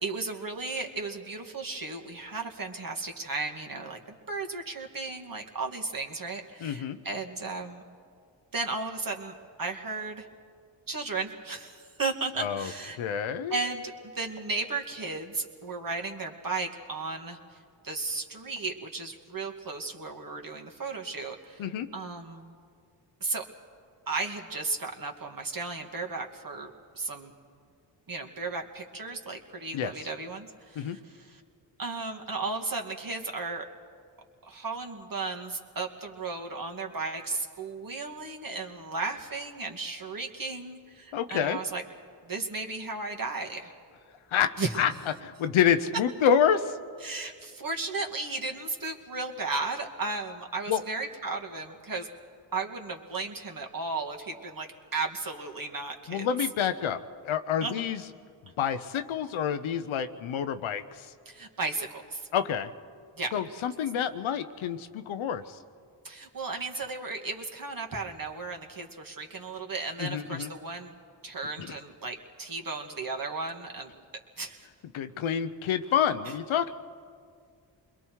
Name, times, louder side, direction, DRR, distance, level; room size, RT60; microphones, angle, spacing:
voice 1, 0.0-4.0 4.3-7.8 8.5-9.3 9.6-10.3 10.9-13.0 13.5-17.6 17.8-22.5 23.2-23.4 24.1-27.3 28.1-31.4 31.8-33.7 34.4-41.8 42.2-43.7 44.6-44.8 47.0-52.1 52.5-56.3 56.6-56.7 57.6-57.9 61.3-62.3 63.2-63.3 66.0-70.9 71.2-73.9 74.4-74.7, right 3 dB, 45° right, 2 dB, 2.3 m, -35 dB
voice 2, 6.6-7.0 12.4-12.7 13.0-13.6 21.6-21.9 29.7-29.9 30.8-31.0 41.1-41.6 44.3-44.9 45.2-46.7 50.7-50.8 56.1-57.0 57.2-58.0 58.6-61.1 62.3-62.7 63.3-65.6 70.0-70.5 71.6-71.8 74.9-76.7, left 8 dB, 75° left, 10 dB, 0.9 m, -28 dB
27.5 x 21.5 x 4.7 m, 2.2 s
supercardioid pair, 45°, 48 cm